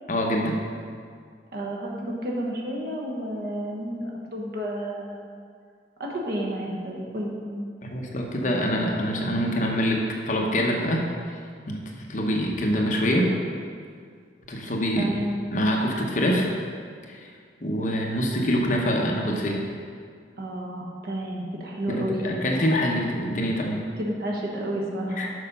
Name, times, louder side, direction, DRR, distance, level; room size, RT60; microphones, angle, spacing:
voice 1, 0.1-0.6 7.9-11.0 11.7-13.3 14.5-15.1 15.5-16.5 17.1-17.3 17.6-19.6 21.9-23.8 25.2-25.3, equal, 45° left, 0 dB, 0.9 m, -25 dB
voice 2, 1.5-5.2 6.0-7.4 14.9-15.3 20.4-22.5 24.0-25.3, right 1 dB, 55° right, -2 dB, 1.2 m, -31 dB
6.4 x 5.5 x 5.3 m, 2.1 s
head